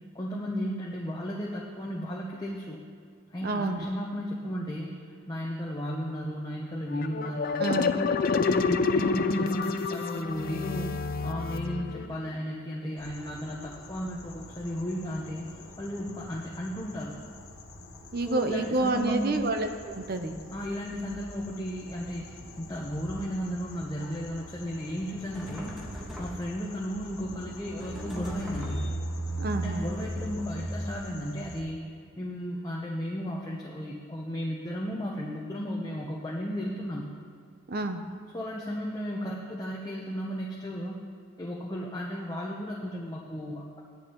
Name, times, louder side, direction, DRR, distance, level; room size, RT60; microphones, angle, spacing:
voice 1, 0.1-2.8 3.3-4.9 5.3-8.0 8.3-15.5 15.8-17.2 18.3-19.4 20.5-22.3 22.6-25.8 26.2-28.9 29.5-31.8 32.2-37.1 38.3-41.0 41.4-43.8, equal, 15° left, -3 dB, 0.7 m, -34 dB
voice 2, 3.4-3.8 7.6-8.0 18.1-20.4 29.4-29.9 37.7-38.0, right 2 dB, 45° right, 6 dB, 0.7 m, -29 dB
sound 1, 6.9-12.3, left 4 dB, 40° left, 0.3 m, -28 dB
sound 2, 13.0-31.6, equal, 70° left, 1.0 m, -41 dB
sound 3, 25.3-26.7 27.8-29.1, equal, ahead, 1.3 m, -41 dB
14.0 x 10.5 x 3.0 m, 2.1 s
head